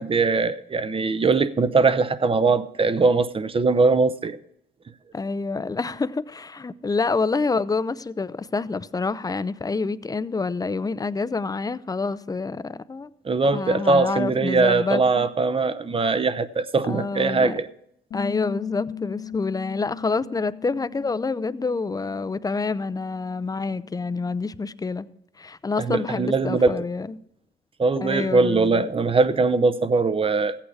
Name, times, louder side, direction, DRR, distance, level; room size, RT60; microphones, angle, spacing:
voice 1, 0.0-4.4 13.2-17.7 25.8-26.8 27.8-30.6, right 4 dB, 25° right, 0.7 m, -21 dB
voice 2, 5.1-13.1 13.5-15.3 16.8-17.5 18.1-25.1 25.4-27.2 28.0-28.9, left 4 dB, 20° left, 0.5 m, -27 dB
Bass guitar, 18.1-24.4, left 8 dB, 65° left, 1.0 m, -40 dB
14.5 x 8.7 x 4.8 m
cardioid pair, 90°, 20 cm